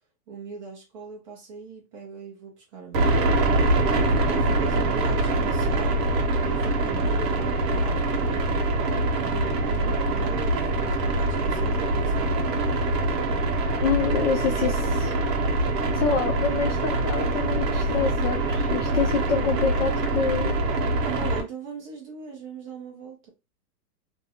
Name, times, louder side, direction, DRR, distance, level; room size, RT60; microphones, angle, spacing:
voice 1, 0.3-3.5 4.0-6.1 6.4-8.7 9.2-12.8 21.0-23.3, right 4 dB, 20° right, 0.6 m, -40 dB
sound 1, 2.9-21.4, right 2 dB, 85° right, 1.0 m, -24 dB
voice 2, 13.8-15.1 15.9-20.6, left 6 dB, 50° left, 0.4 m, -27 dB
2.6 x 2.1 x 2.8 m
supercardioid pair, 165°, 47 cm